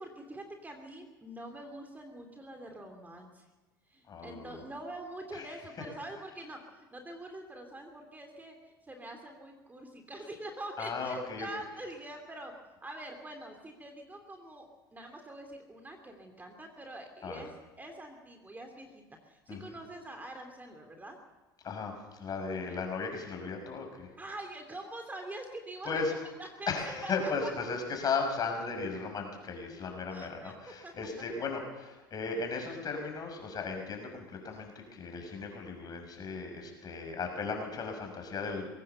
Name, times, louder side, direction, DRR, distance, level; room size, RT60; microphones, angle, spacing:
voice 1, 0.0-3.5 3.9-8.6 8.8-12.5 12.8-21.2 22.5-22.8 24.2-26.7 27.0-27.5 30.1-30.9, right 1 dB, 15° right, 4 dB, 3.0 m, -45 dB
voice 2, 4.1-4.6 5.3-5.5 10.8-11.5 17.2-17.4 19.5-19.7 21.6-24.1 25.8-26.1 26.7-38.7, left 4 dB, 35° left, 3 dB, 6.0 m, -36 dB
21.0 x 17.5 x 7.0 m, 1.2 s
hypercardioid pair, 75°, 11 cm